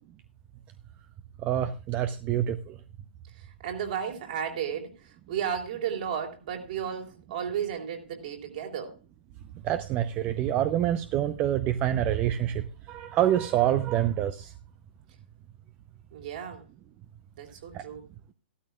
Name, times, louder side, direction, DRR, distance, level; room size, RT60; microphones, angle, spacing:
voice 1, 1.4-2.7 9.6-14.5 17.7-17.8, right 11 dB, 25° right, 11 dB, 0.7 m, -26 dB
voice 2, 3.6-8.9 16.1-16.6 17.4-18.0, right 8 dB, 50° right, 3 dB, 3.5 m, -33 dB
15.5 x 12.5 x 2.3 m, 0.33 s
figure-of-eight pair, 115°, 6 cm